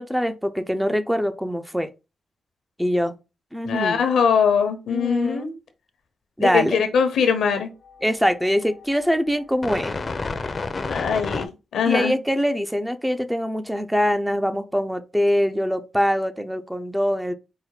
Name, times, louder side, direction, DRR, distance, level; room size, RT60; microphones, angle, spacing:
voice 1, 0.0-1.9 2.8-3.1 3.5-4.0 4.9-5.5 6.4-6.8 8.0-9.9 11.9-17.3, equal, 5° right, 0.6 m, -23 dB
voice 2, 3.6-5.5 6.4-7.7 10.5-10.6 10.9-12.1, left 6 dB, 85° left, 0.9 m, -22 dB
sound 1, 7.7-11.5, left 3 dB, 45° left, 0.6 m, -31 dB
4.8 x 2.1 x 4.7 m
cardioid pair, 65°, 0 cm